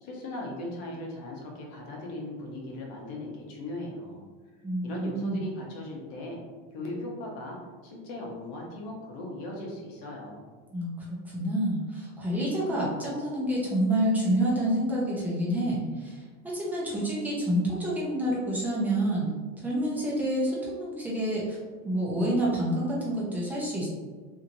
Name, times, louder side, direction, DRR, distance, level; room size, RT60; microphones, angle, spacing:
voice 1, 0.0-4.2 4.8-6.4 6.7-7.6 7.8-10.5, left 1 dB, 60° left, -1 dB, 0.9 m, -38 dB
voice 2, 4.6-5.4 10.7-19.3 19.6-21.6 21.8-23.9, right 1 dB, 5° right, -6 dB, 0.6 m, -28 dB
2.8 x 2.7 x 2.6 m, 1.4 s
supercardioid pair, 145°, 37 cm